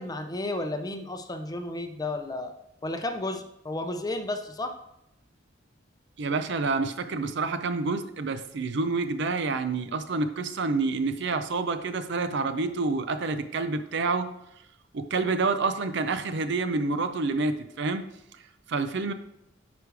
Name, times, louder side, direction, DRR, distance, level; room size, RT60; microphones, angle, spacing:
voice 1, 0.0-2.5 2.8-4.8, left 2 dB, 20° left, 6 dB, 0.6 m, -32 dB
voice 2, 6.2-14.3 14.9-18.0 18.7-19.1, right 3 dB, 65° right, 10 dB, 0.5 m, -28 dB
9.4 x 5.1 x 3.4 m, 0.82 s
head